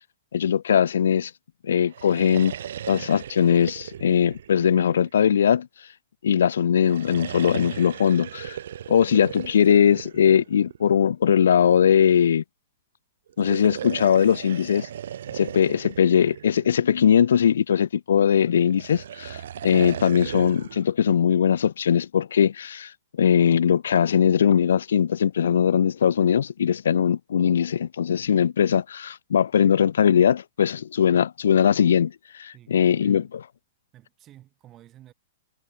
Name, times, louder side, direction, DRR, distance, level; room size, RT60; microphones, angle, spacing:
voice 1, 0.3-1.3 1.6-2.5 2.9-5.7 6.2-8.6 8.9-12.4 13.4-14.9 15.3-22.9 23.2-33.2, left 8 dB, 85° left, 0.4 m, -20 dB
sound 1, 1.8-5.5 6.8-11.1 13.3-17.3 18.6-20.8, right 10 dB, 70° right, 1.4 m, -37 dB
voice 2, 32.5-33.3 33.9-35.1, right 13 dB, 25° right, 5.2 m, -52 dB
hypercardioid pair, 150°, 0 cm